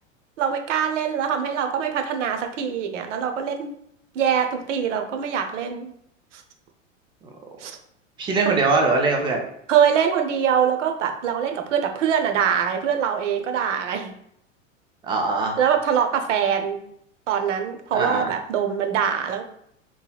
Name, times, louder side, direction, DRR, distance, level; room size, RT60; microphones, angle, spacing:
voice 1, 0.4-3.7 4.1-5.9 6.3-6.4 7.6-7.8 9.7-14.1 15.6-16.8 17.3-19.4, right 8 dB, 65° right, 6 dB, 0.7 m, -23 dB
voice 2, 8.2-9.4 15.1-15.6 17.9-18.3, right 3 dB, 15° right, 1 dB, 0.3 m, -21 dB
3.8 x 2.8 x 2.3 m, 0.72 s
figure-of-eight pair, 95°, 40 cm